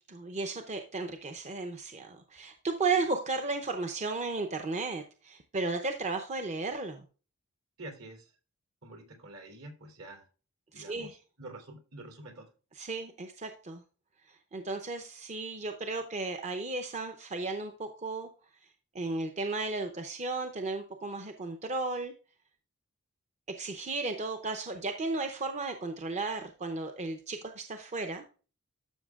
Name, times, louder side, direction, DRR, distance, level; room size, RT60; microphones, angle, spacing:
voice 1, 0.1-7.0 10.7-11.2 12.8-13.8 14.5-18.3 18.9-22.1 23.6-28.2, right 3 dB, 30° right, 6 dB, 0.7 m, -34 dB
voice 2, 7.8-8.4 8.8-10.3 10.7-12.5, right 2 dB, 70° right, 4 dB, 3.2 m, -47 dB
12.5 x 6.2 x 2.4 m, 0.36 s
head